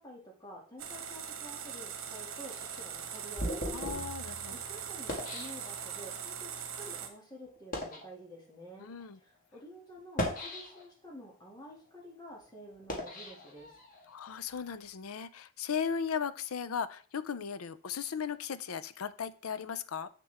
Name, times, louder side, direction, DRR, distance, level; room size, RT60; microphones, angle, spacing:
voice 1, 0.0-13.8, equal, 20° left, -2 dB, 2.3 m, -50 dB
sound 1, 0.8-7.1, right 8 dB, 75° right, 1.1 m, -41 dB
sound 2, 2.5-6.2 6.9-7.0 7.6-8.1 8.9-9.0 10.0-11.1 11.6-14.1, equal, 40° left, 1.6 m, -39 dB
voice 2, 3.7-4.5 8.8-9.2 14.1-20.1, left 7 dB, 80° left, 15 dB, 0.5 m, -37 dB
7.6 x 6.5 x 3.5 m, 0.42 s
head